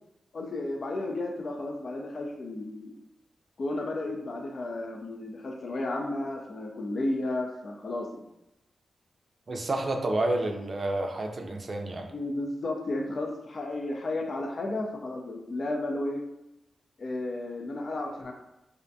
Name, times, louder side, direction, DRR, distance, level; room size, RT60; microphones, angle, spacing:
voice 1, 0.3-2.9 3.6-8.2 12.1-16.2 17.0-18.3, left 2 dB, 60° left, 1 dB, 0.4 m, -33 dB
voice 2, 9.5-12.1, right 2 dB, 55° right, 3 dB, 0.4 m, -29 dB
2.5 x 2.1 x 2.5 m, 0.90 s
cardioid pair, 45°, 0 cm